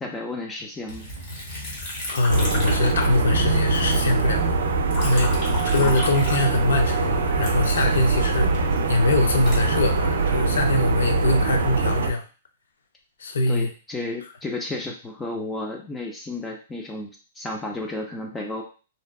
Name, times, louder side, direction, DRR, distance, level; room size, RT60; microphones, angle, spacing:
voice 1, 0.0-1.1 5.3-6.0 13.5-17.1 17.4-18.6, left 2 dB, 10° left, 1 dB, 0.3 m, -32 dB
Liquid, 0.9-3.5 3.7-6.9 7.4-10.4 11.0-11.5, left 1 dB, 35° left, 1.0 m, -34 dB
voice 2, 2.1-4.6 5.0-12.2 13.2-13.7, left 2 dB, 85° left, 5 dB, 0.5 m, -23 dB
sound 1, 2.3-12.1, right 3 dB, 85° right, 0.4 m, -23 dB
2.6 x 2.3 x 2.2 m, 0.36 s
hypercardioid pair, 160°, 0 cm